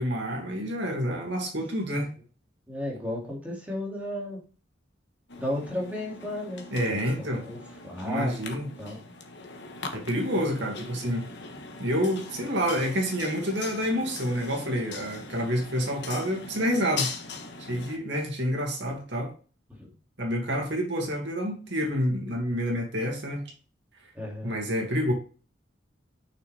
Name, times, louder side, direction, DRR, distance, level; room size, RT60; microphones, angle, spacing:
voice 1, 0.0-2.1 6.7-7.4 8.1-8.7 9.9-11.3 11.8-17.1 17.7-19.3 20.2-23.4 24.4-25.1, equal, 65° right, 2.3 m, -28 dB
voice 2, 2.7-4.4 5.4-6.6 6.9-7.6 7.8-8.3 8.8-9.0 19.8-19.9 24.1-24.6, left 1 dB, 10° right, 2.5 m, -33 dB
sound 1, 5.3-18.0, left 4 dB, 60° left, 1.3 m, -40 dB
6.8 x 6.1 x 3.4 m
head